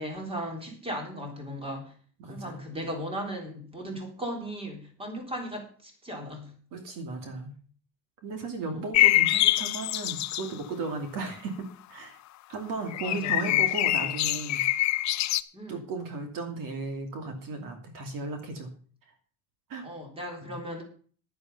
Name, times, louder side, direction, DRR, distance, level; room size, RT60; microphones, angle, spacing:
voice 1, 0.0-1.9 2.3-6.6 8.6-8.8 13.0-13.7 14.0-14.3 15.5-15.8 19.8-20.8, equal, 15° right, 2 dB, 3.6 m, -37 dB
voice 2, 2.2-2.6 6.7-7.5 8.2-11.6 11.9-12.2 12.5-14.6 15.7-18.7 19.7-19.9 20.4-20.6, right 3 dB, 65° right, 5 dB, 2.8 m, -35 dB
sound 1, 8.9-10.5 12.9-15.4, left 15 dB, 50° left, 0.6 m, -24 dB
11.0 x 10.5 x 5.5 m, 0.43 s
cardioid pair, 155°, 36 cm